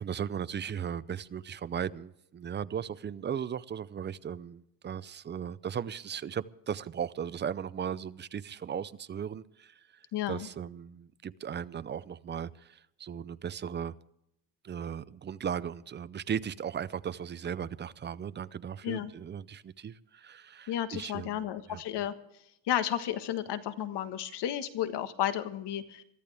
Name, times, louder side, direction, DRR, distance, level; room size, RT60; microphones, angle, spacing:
voice 1, 0.0-9.8 10.3-13.9 14.6-21.8, right 8 dB, 25° right, 16 dB, 0.5 m, -37 dB
voice 2, 10.1-10.5 18.8-19.1 20.7-22.1 22.6-26.0, left 11 dB, 60° left, 10 dB, 1.5 m, -32 dB
22.5 x 14.0 x 3.5 m, 0.79 s
cardioid pair, 130°, 45 cm